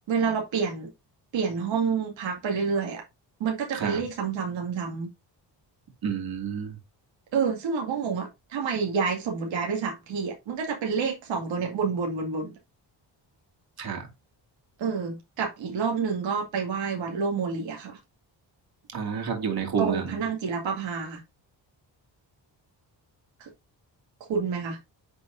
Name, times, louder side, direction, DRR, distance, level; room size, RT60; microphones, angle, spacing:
voice 1, 0.1-0.9 1.3-3.0 3.4-5.1 7.3-12.6 14.8-18.0 19.8-21.2 23.4-23.5 24.2-24.8, right 5 dB, 90° right, 2.2 m, -28 dB
voice 2, 6.0-6.7 13.8-14.1 18.9-20.0, right 7 dB, 55° right, 2.6 m, -29 dB
9.4 x 4.7 x 2.6 m
cardioid pair, 110°, 45 cm